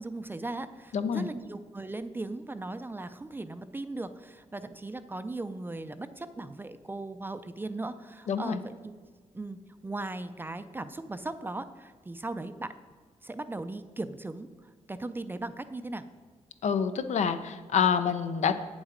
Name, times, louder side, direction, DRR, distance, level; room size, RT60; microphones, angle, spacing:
voice 1, 0.0-8.9 9.3-12.7 13.2-16.0, right 2 dB, 15° right, 11 dB, 0.4 m, -38 dB
voice 2, 0.9-1.3 8.3-8.6 16.6-18.5, left 7 dB, 70° left, 10 dB, 0.7 m, -27 dB
8.9 x 7.2 x 5.1 m, 1.5 s
wide cardioid pair, 115°, 12 cm